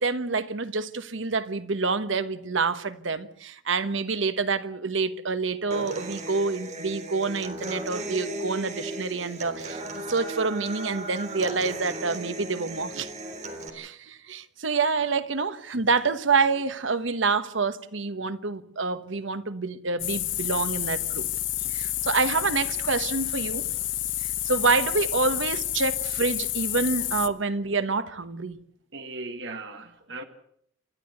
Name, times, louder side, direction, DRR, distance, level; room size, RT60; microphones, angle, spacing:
voice 1, 0.0-9.8 10.1-13.1 13.7-21.3 21.7-23.7 24.2-28.6, right 4 dB, 85° right, 1.3 m, -27 dB
Human voice / Acoustic guitar, 5.7-13.7, right 1 dB, 40° right, 3.5 m, -36 dB
sound 1, 20.0-27.3, left 13 dB, 85° left, 1.2 m, -29 dB
voice 2, 28.9-30.2, right 2 dB, 65° right, 1.7 m, -37 dB
29.0 x 13.0 x 7.9 m
head